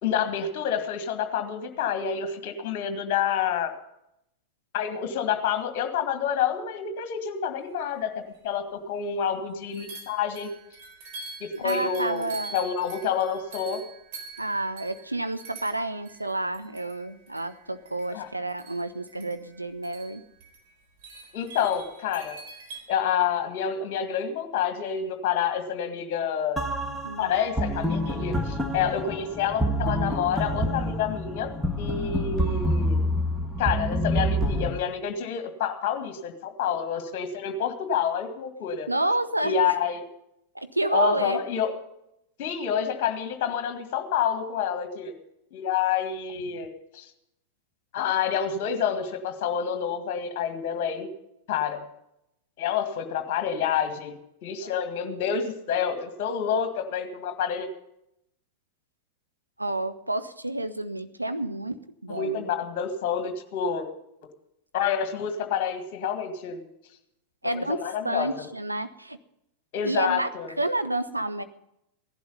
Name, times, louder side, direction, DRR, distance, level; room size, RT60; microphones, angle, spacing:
voice 1, 0.0-3.7 4.7-8.1 8.4-10.5 11.4-13.8 18.1-18.3 21.3-22.4 22.9-26.6 27.2-31.5 31.8-33.0 33.6-38.9 39.4-40.1 40.9-41.7 42.4-45.1 45.5-46.7 46.9-47.1 47.9-51.1 51.5-51.8 52.6-57.7 62.1-63.9 64.2-64.3 64.7-66.6 67.5-68.5 69.7-70.5, left 8 dB, 45° left, 8 dB, 1.9 m, -28 dB
sound 1, 8.0-8.1 8.3-8.4 9.7-22.8, right 4 dB, 50° right, 4.2 m, -45 dB
voice 2, 11.6-12.5 14.4-20.2 27.0-27.3 38.9-39.7 40.5-41.4 54.6-54.7 59.6-62.5 63.7-63.8 67.4-69.2 69.8-70.3 70.6-71.4, right 2 dB, 85° right, 10 dB, 0.7 m, -29 dB
sound 2, 26.6-34.7, equal, ahead, 1.6 m, -27 dB
16.5 x 11.5 x 5.5 m, 0.80 s
figure-of-eight pair, 90°, 0 cm